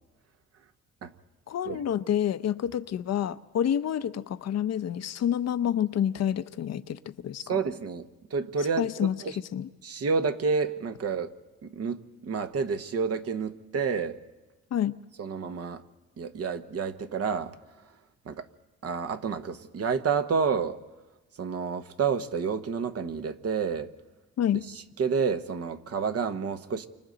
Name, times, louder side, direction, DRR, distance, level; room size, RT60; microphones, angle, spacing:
voice 1, 1.5-7.6 8.8-9.2 9.5-9.7 14.7-14.9 24.4-24.6, left 10 dB, 60° left, 12 dB, 0.7 m, -28 dB
voice 2, 7.4-9.4 9.8-11.3 11.6-14.2 15.2-15.8 16.2-17.5 18.2-18.5 18.8-20.8 21.4-23.9 24.7-26.9, right 5 dB, 55° right, 9 dB, 1.1 m, -29 dB
29.0 x 25.0 x 4.0 m, 1.2 s
cardioid pair, 90°, 30 cm